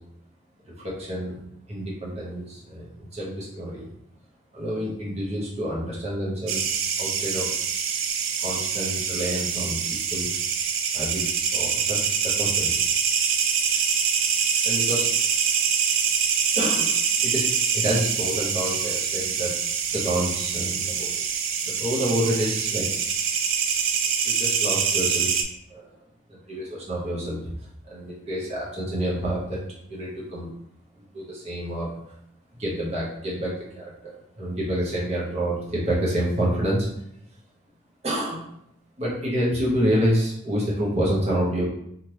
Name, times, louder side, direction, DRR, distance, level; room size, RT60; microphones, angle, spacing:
voice 1, 0.7-1.4 1.7-3.9 4.5-6.6 7.0-7.5 8.4-10.3 10.9-12.9 14.6-15.3 16.5-16.9 17.2-21.2 21.6-22.9 24.2-25.4 25.7-26.0 26.3-29.6 29.9-30.5 31.0-32.1 32.5-36.9 38.0-38.5 39.0-41.6, equal, 30° right, -5 dB, 0.8 m, -28 dB
sound 1, 6.5-25.4, right 7 dB, 75° right, 0.4 m, -25 dB
3.2 x 2.4 x 2.9 m, 0.75 s
head